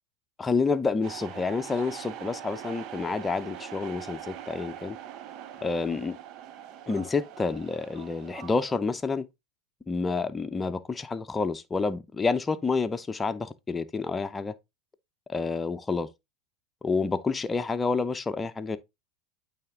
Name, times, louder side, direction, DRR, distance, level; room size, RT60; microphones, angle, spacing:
voice 1, 0.4-5.0 5.6-6.2 6.9-9.2 9.9-14.5 15.3-16.1 16.8-18.8, left 4 dB, 20° left, 0.7 m, -29 dB
sound 1, 1.0-8.8, right 10 dB, 50° right, 0.8 m, -42 dB
8.7 x 3.5 x 3.7 m
hypercardioid pair, 90°, 0 cm